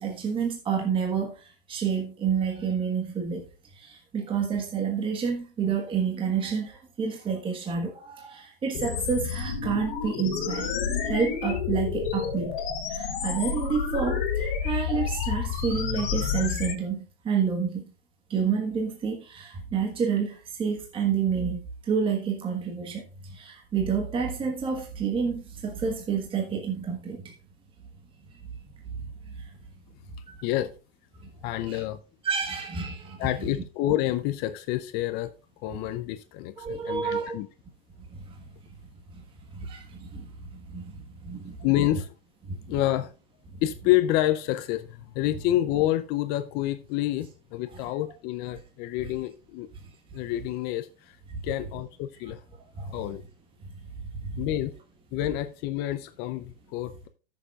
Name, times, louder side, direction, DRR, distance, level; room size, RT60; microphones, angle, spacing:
voice 1, 0.0-3.4 3.7-10.7 11.0-12.6 12.9-17.9 18.3-27.3 29.3-29.5 31.2-31.3 31.7-31.8 32.2-33.5 36.6-37.4 38.1-38.4 39.1-39.2 39.5-41.6 42.5-42.6 52.8-53.1 54.2-54.4, right 6 dB, 15° right, 1.4 m, -29 dB
sound 1, 8.7-16.7, left 7 dB, 55° left, 2.9 m, -29 dB
voice 2, 31.4-32.0 33.2-35.3 35.6-37.5 41.6-42.1 42.7-43.1 43.6-49.7 50.1-51.2 51.4-52.4 52.9-53.2 54.4-54.7 55.1-57.1, left 14 dB, 35° left, 0.5 m, -28 dB
14.0 x 6.8 x 2.4 m
hypercardioid pair, 135°, 30 cm